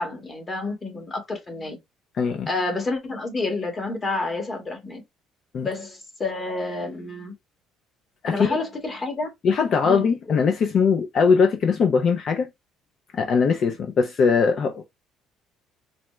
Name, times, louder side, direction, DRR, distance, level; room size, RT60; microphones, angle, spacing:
voice 1, 0.0-1.8 2.5-5.0 5.6-7.3 8.2-9.3 9.8-10.4, left 2 dB, 30° left, 1.6 m, -29 dB
voice 2, 2.2-2.5 5.5-5.7 8.2-8.6 9.4-12.5 13.1-14.8, left 5 dB, 50° left, 0.6 m, -21 dB
4.1 x 2.3 x 3.1 m
cardioid pair, 110°, 0 cm